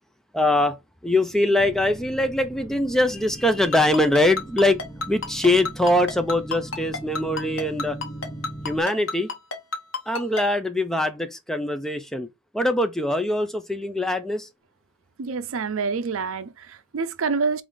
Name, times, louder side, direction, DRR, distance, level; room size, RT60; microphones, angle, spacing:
voice 1, 0.3-0.8 1.0-4.8 5.1-8.0 8.6-9.3 10.1-12.3 12.5-14.5, left 1 dB, ahead, 0.4 m, -22 dB
sound 1, 1.6-8.8, right 1 dB, 20° left, 1.3 m, -39 dB
Ringtone, 3.7-10.4, left 3 dB, 65° left, 1.0 m, -29 dB
voice 2, 15.2-17.6, right 4 dB, 70° right, 0.5 m, -27 dB
4.8 x 2.6 x 3.6 m
head